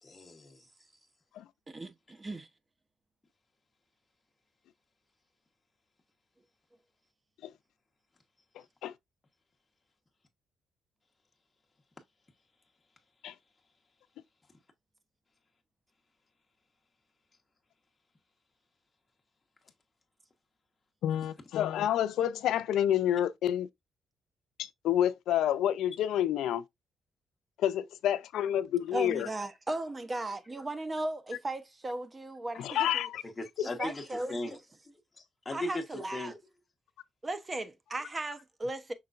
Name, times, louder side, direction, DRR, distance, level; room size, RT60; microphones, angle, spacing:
voice 1, 0.0-0.6 33.2-34.6 35.2-36.4, left 2 dB, 25° left, 1.1 m, -38 dB
voice 2, 1.7-2.5 28.9-33.1 33.8-34.6 35.5-36.3 37.2-38.9, right 2 dB, 25° right, 0.8 m, -36 dB
voice 3, 21.0-23.7 24.6-26.6 27.6-29.3 32.6-33.2, left 11 dB, 80° left, 0.4 m, -29 dB
5.7 x 3.7 x 2.4 m
cardioid pair, 90°, 0 cm